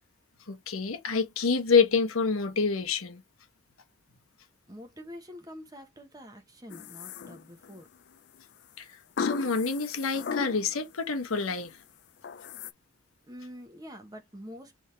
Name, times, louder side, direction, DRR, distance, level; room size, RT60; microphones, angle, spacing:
voice 1, 0.5-3.2 8.8-11.8, left 5 dB, 90° left, 1.1 m, -27 dB
voice 2, 4.7-7.9 13.3-14.8, equal, 20° right, 1.0 m, -46 dB
sound 1, 6.7-7.8 9.2-10.9 11.3-11.7 12.2-12.7, left 6 dB, 55° left, 0.4 m, -36 dB
3.5 x 3.5 x 4.3 m
head